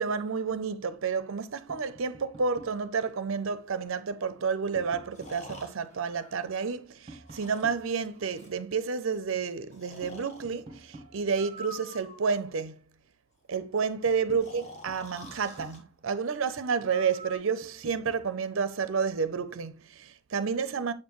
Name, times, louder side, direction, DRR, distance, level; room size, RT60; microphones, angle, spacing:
voice 1, 0.0-12.8 13.5-20.9, right 5 dB, 65° right, 0.5 m, -30 dB
Tap, 1.7-2.9 4.2-5.8 7.1-8.5 10.0-11.5 13.4-13.5 13.8-16.0 17.6-18.3, right 1 dB, 25° right, 1.4 m, -50 dB
Breathing, 3.2-3.3 5.1-6.8 7.3-8.6 9.7-10.5 11.3-12.4 14.4-15.8 16.9-17.4, equal, 30° left, 1.3 m, -47 dB
7.3 x 4.4 x 3.0 m
head